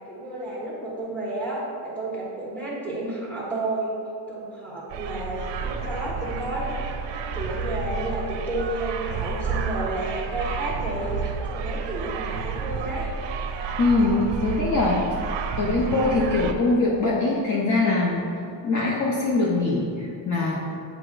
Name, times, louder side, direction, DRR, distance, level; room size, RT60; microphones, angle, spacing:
voice 1, 0.1-3.9 4.3-13.1, right 1 dB, 5° left, -7 dB, 1.4 m, -31 dB
sound 1, 4.9-16.5, right 5 dB, 65° right, 0.6 m, -30 dB
voice 2, 13.8-15.2 15.6-18.3 18.6-20.6, left 3 dB, 40° left, -5 dB, 0.8 m, -22 dB
8.0 x 5.0 x 2.5 m, 2.5 s
cardioid pair, 155°, 47 cm